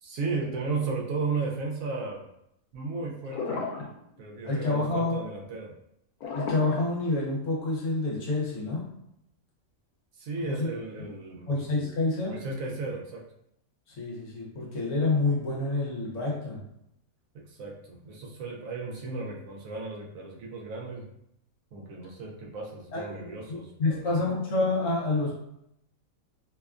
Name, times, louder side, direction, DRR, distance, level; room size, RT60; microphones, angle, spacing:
voice 1, 0.0-2.2 2.7-3.6 4.2-5.7 10.2-11.5 12.2-13.2 17.3-21.1 21.7-24.0, right 4 dB, 70° right, -1 dB, 1.0 m, -34 dB
sound 1, 3.2-3.9 4.2-4.5 6.2-7.6, left 4 dB, 85° left, 1.1 m, -34 dB
voice 2, 4.4-5.2 6.3-8.9 10.4-10.7 11.5-12.4 14.0-16.6 22.9-25.3, left 3 dB, 65° left, -3 dB, 1.0 m, -28 dB
2.8 x 2.2 x 2.3 m, 0.77 s
omnidirectional pair, 1.5 m